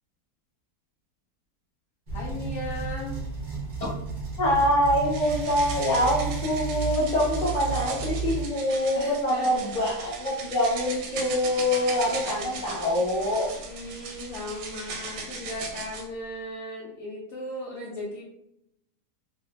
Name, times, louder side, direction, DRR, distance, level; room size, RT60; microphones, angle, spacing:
voice 1, 2.1-3.2 9.0-9.7 12.0-13.0 13.6-18.2, left 1 dB, 70° left, -4 dB, 0.7 m, -37 dB
sound 1, 2.1-8.4, right 5 dB, 50° right, 0.6 m, -33 dB
voice 2, 4.4-13.5, left 1 dB, 30° left, -4 dB, 0.9 m, -25 dB
sound 2, 5.0-16.1, right 4 dB, 90° right, 1.2 m, -38 dB
3.1 x 2.7 x 2.2 m, 0.79 s
omnidirectional pair, 1.8 m